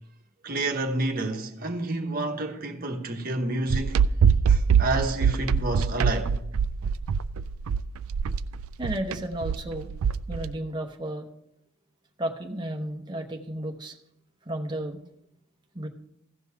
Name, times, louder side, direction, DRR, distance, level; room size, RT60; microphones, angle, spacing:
voice 1, 0.4-4.0 4.5-6.3, right 2 dB, 40° right, 1.1 m, -29 dB
sound 1, 3.7-10.5, right 6 dB, 75° right, 0.4 m, -23 dB
voice 2, 8.8-9.9 10.3-11.3 12.2-13.9 14.4-15.0 15.7-15.9, right 1 dB, 20° right, 0.9 m, -33 dB
15.5 x 5.4 x 5.8 m
head